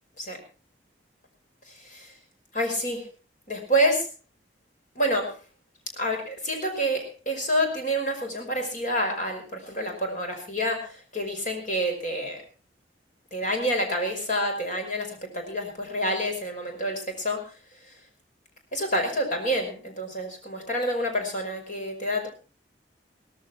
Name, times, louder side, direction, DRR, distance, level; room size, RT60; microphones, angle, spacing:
voice 1, 1.7-2.1 2.5-3.1 3.5-4.1 5.0-5.4 5.9-12.4 13.3-17.6 17.9-18.0 18.7-22.3, equal, 45° left, 3 dB, 5.3 m, -28 dB
17.5 x 14.5 x 4.3 m, 0.36 s
head